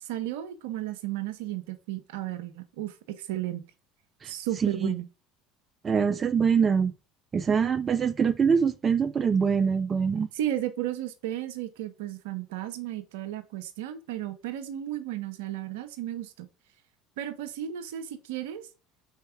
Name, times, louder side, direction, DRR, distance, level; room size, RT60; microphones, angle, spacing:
voice 1, 0.0-3.6 4.3-5.1 10.3-16.5 17.2-18.7, right 12 dB, 70° right, 0.7 m, -34 dB
voice 2, 4.6-4.9 5.8-6.9 7.3-10.3, right 6 dB, 30° right, 0.4 m, -24 dB
4.6 x 4.3 x 4.8 m
hypercardioid pair, 70°, 0 cm